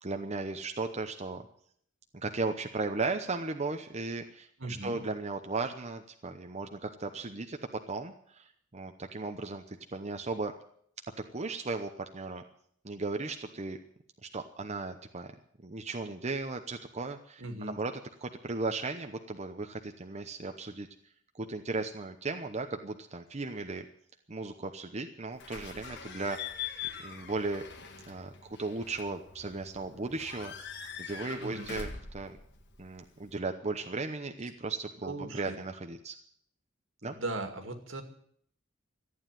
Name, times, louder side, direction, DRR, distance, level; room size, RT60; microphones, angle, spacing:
voice 1, 0.0-1.4 2.1-7.6 7.9-10.5 11.3-12.4 12.8-13.8 14.2-15.3 15.6-17.9 18.2-20.9 21.3-23.9 24.3-26.4 27.0-27.6 28.1-31.9 32.1-32.4 32.8-36.2 37.0-37.2, right 3 dB, 35° right, 6 dB, 0.8 m, -36 dB
voice 2, 4.6-5.0 17.4-17.8 31.4-31.7 35.0-35.6 37.0-38.0, right 2 dB, 75° right, 6 dB, 2.4 m, -38 dB
Slam / Squeak / Alarm, 25.4-33.4, left 7 dB, 60° left, 1.9 m, -43 dB
14.0 x 9.6 x 9.1 m, 0.65 s
head